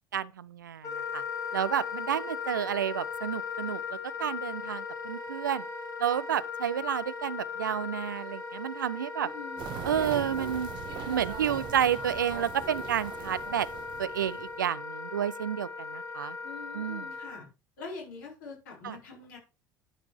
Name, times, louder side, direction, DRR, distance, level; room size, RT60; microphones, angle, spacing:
voice 1, 0.1-1.2 1.5-5.6 6.0-9.3 9.8-10.7 11.1-13.7 14.0-16.4 16.7-17.1 18.8-19.0, right 9 dB, 75° right, 0.5 m, -30 dB
Wind instrument woodwind instrument, 0.8-17.4, left 5 dB, 30° left, 2.2 m, -38 dB
voice 2, 9.2-9.9 16.4-17.5 17.8-19.4, left 4 dB, 65° left, 4.5 m, -44 dB
sound 1, 9.6-14.6, right 11 dB, 45° right, 0.8 m, -41 dB
11.5 x 5.2 x 4.8 m
figure-of-eight pair, 60°, 11 cm